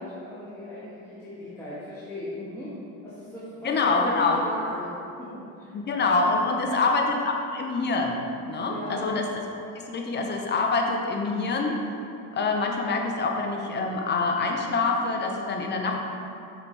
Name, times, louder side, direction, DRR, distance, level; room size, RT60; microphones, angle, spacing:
voice 1, 0.0-2.7 3.0-5.7 6.6-6.8 8.6-9.1, left 1 dB, 5° left, -12 dB, 1.5 m, -37 dB
voice 2, 3.6-4.4 5.7-9.3 9.7-11.8 12.3-15.9, left 3 dB, 30° left, 2 dB, 0.8 m, -25 dB
7.2 x 6.0 x 3.3 m, 2.6 s
cardioid pair, 120°, 36 cm